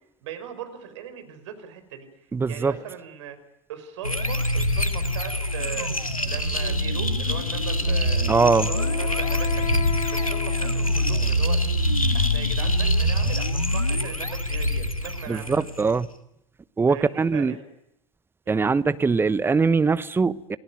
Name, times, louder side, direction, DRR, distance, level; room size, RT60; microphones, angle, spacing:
voice 1, 0.2-2.1 2.5-3.4 3.7-5.9 6.2-9.7 10.1-11.6 12.1-15.6 16.9-17.7 18.4-18.6, right 9 dB, 60° right, 5.1 m, -39 dB
voice 2, 2.3-2.7 8.3-8.7 15.3-16.1 16.8-17.5 18.5-20.6, right 4 dB, 15° right, 1.0 m, -22 dB
Space Whirl, 4.0-16.0, left 1 dB, 90° left, 1.9 m, -24 dB
Wind instrument woodwind instrument, 7.8-11.4, left 10 dB, 45° left, 3.5 m, -35 dB
28.0 x 18.5 x 9.5 m
figure-of-eight pair, 80°, 17 cm